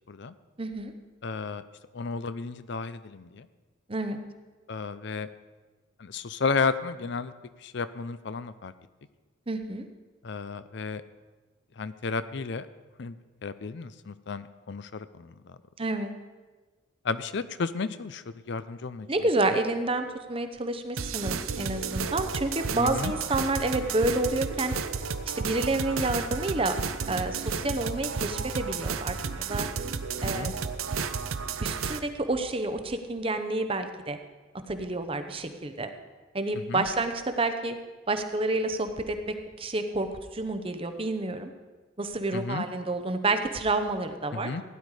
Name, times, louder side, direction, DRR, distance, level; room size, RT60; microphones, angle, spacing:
voice 1, 0.6-0.9 3.9-4.2 9.5-9.9 15.8-16.1 19.1-24.7 25.4-26.7 27.1-29.7 30.2-30.6 31.3-34.2 34.7-35.9 36.3-37.8 38.1-41.5 42.0-44.5, right 2 dB, 25° right, 8 dB, 0.8 m, -29 dB
voice 2, 1.2-1.6 1.9-3.5 4.7-5.3 6.0-7.3 7.6-8.7 10.2-11.0 11.8-12.7 13.0-15.6 17.0-19.1 22.8-23.1 30.2-30.5 36.6-36.9 42.3-42.6 44.3-44.6, left 4 dB, 55° left, 13 dB, 0.5 m, -33 dB
sound 1, 21.0-32.0, right 5 dB, 90° right, 0.7 m, -32 dB
16.0 x 10.0 x 4.9 m, 1.3 s
head